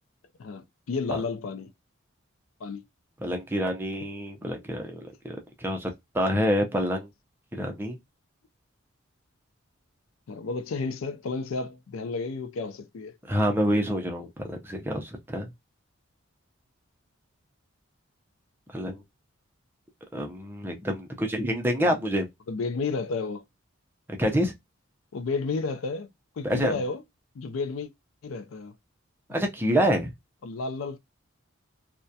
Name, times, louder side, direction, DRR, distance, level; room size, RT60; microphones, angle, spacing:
voice 1, 0.4-1.7 2.6-2.8 10.3-13.2 21.8-22.0 22.5-23.4 25.1-26.1 26.4-27.0 27.3-27.9 28.2-28.7 30.4-31.0, left 4 dB, 80° left, 0.4 m, -32 dB
voice 2, 3.2-7.1 7.5-8.0 13.3-15.5 18.7-19.0 20.1-22.3 24.2-24.5 26.4-26.8 29.3-30.1, equal, 10° right, 0.5 m, -27 dB
2.3 x 2.1 x 2.6 m
head